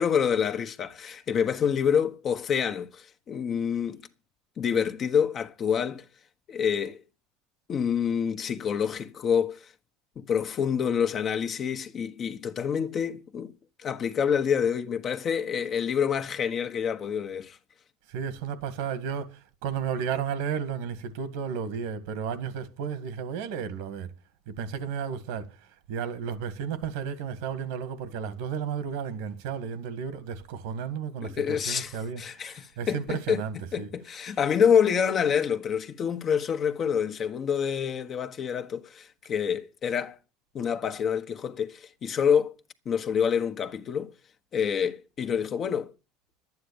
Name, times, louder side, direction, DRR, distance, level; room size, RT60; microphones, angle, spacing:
voice 1, 0.0-4.0 4.6-6.0 6.5-7.0 7.7-9.7 10.2-13.5 13.8-17.6 31.2-33.4 33.7-40.2 40.5-42.5 42.8-44.1 44.5-45.9, left 7 dB, 40° left, 1.3 m, -27 dB
voice 2, 18.1-24.1 24.5-25.6 25.9-33.9, right 7 dB, 75° right, 1.9 m, -33 dB
11.5 x 9.5 x 7.1 m
supercardioid pair, 95°, 0 cm